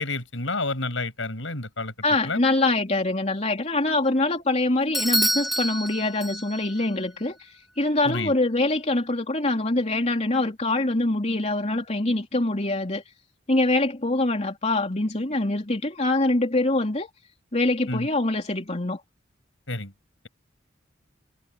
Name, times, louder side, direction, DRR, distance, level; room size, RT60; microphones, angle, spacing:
voice 1, 0.0-1.9 2.2-2.4 8.0-8.3 17.9-18.1 19.7-19.9, left 2 dB, 75° left, 7.6 m, -29 dB
voice 2, 2.0-13.0 13.5-17.1 17.5-19.0, left 2 dB, 35° left, 3.4 m, -24 dB
Bell / Doorbell, 4.9-6.8, equal, ahead, 4.2 m, -27 dB
head